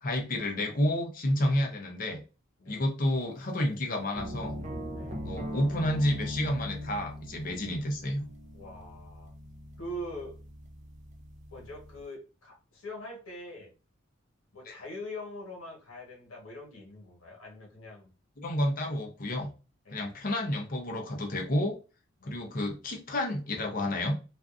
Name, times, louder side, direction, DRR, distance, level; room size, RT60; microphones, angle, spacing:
voice 1, 0.0-2.2 2.7-4.5 5.2-8.2 14.6-14.7 18.4-19.5 19.9-21.7 22.3-24.2, left 1 dB, 40° left, 2 dB, 0.6 m, -30 dB
sound 1, 4.1-12.0, equal, 35° right, 0.4 m, -41 dB
voice 2, 4.9-5.3 8.5-9.3 9.8-10.4 11.5-13.7 14.5-18.1 19.8-20.1 22.2-22.5, left 1 dB, 90° left, -1 dB, 1.1 m, -43 dB
2.5 x 2.3 x 2.4 m, 0.32 s
head